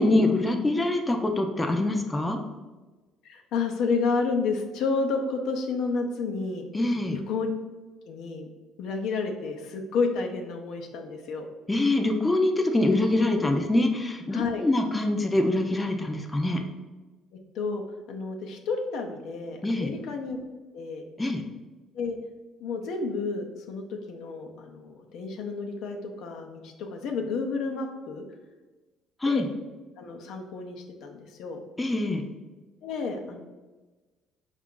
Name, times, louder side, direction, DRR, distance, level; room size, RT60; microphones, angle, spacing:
voice 1, 0.0-2.4 6.7-7.2 11.7-16.6 19.6-19.9 21.2-21.4 29.2-29.5 31.8-32.2, left 2 dB, 15° left, 4 dB, 0.4 m, -24 dB
voice 2, 3.2-6.7 7.1-7.5 8.1-8.5 8.8-11.5 14.3-14.7 17.5-20.4 20.7-21.0 21.9-22.2 22.6-28.2 29.3-29.4 30.0-31.6 32.8-33.4, left 4 dB, 75° left, 3 dB, 0.6 m, -30 dB
4.4 x 2.4 x 3.7 m, 1.2 s
cardioid pair, 95°, 0 cm